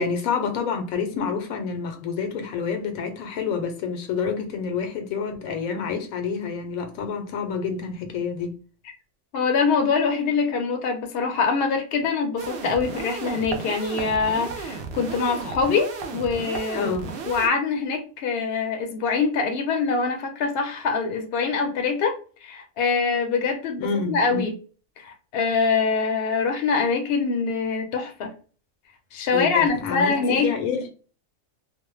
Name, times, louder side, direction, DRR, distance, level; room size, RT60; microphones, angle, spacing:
voice 1, 0.0-8.6 16.7-17.1 23.8-24.4 29.3-30.9, left 5 dB, 80° left, 1.0 m, -28 dB
voice 2, 9.3-16.9 17.2-22.1 22.4-24.5 25.0-28.3 29.1-30.5, left 5 dB, 55° left, 0.7 m, -24 dB
sound 1, 12.4-17.5, right 4 dB, 60° right, 0.6 m, -34 dB
2.6 x 2.1 x 3.0 m
omnidirectional pair, 1.5 m